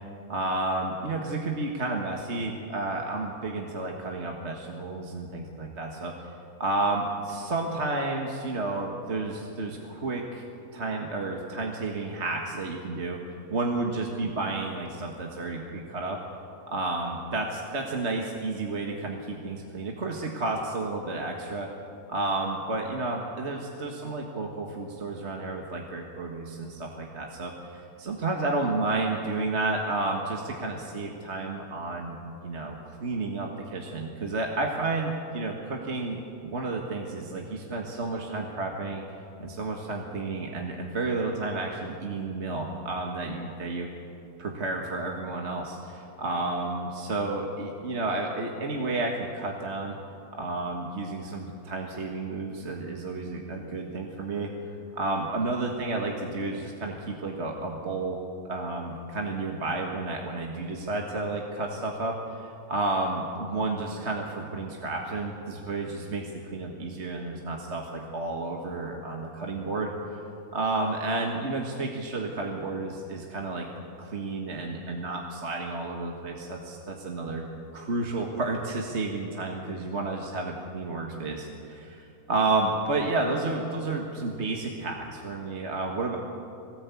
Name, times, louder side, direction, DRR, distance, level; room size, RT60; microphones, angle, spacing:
voice 1, 0.3-6.1 6.6-10.5 10.7-13.2 13.5-16.2 16.7-21.7 22.1-32.2 32.4-39.0 39.4-43.9 44.4-50.0 50.4-54.5 54.9-58.2 58.5-69.9 70.5-73.7 74.0-77.4 77.7-86.2, right 2 dB, 45° right, 0 dB, 2.0 m, -31 dB
22.0 x 18.0 x 8.4 m, 2.6 s
omnidirectional pair, 1.7 m